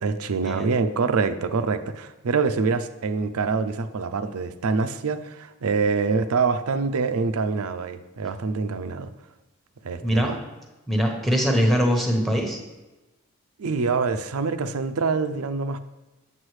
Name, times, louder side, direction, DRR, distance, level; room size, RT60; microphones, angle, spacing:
voice 1, 0.0-9.1 9.8-10.4 13.6-15.8, right 4 dB, 80° right, 10 dB, 0.5 m, -25 dB
voice 2, 10.0-10.3 10.9-12.6, equal, ahead, 1 dB, 1.0 m, -22 dB
7.9 x 7.3 x 3.2 m, 1.1 s
head